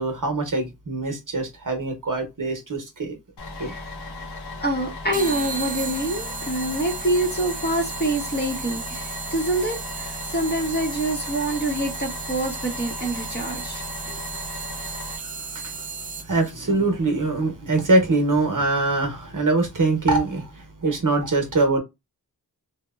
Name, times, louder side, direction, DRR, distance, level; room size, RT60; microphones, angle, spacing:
voice 1, 0.0-3.2 3.6-3.7 15.2-15.9 16.2-21.8, right 2 dB, 55° right, 0.8 m, -23 dB
Bus, 3.4-15.2, left 3 dB, 80° left, 0.7 m, -37 dB
voice 2, 4.6-14.1, right 1 dB, 25° left, 0.7 m, -26 dB
sound 1, 5.1-16.5, right 5 dB, 25° right, 0.3 m, -34 dB
2.9 x 2.1 x 2.2 m
wide cardioid pair, 65°, 39 cm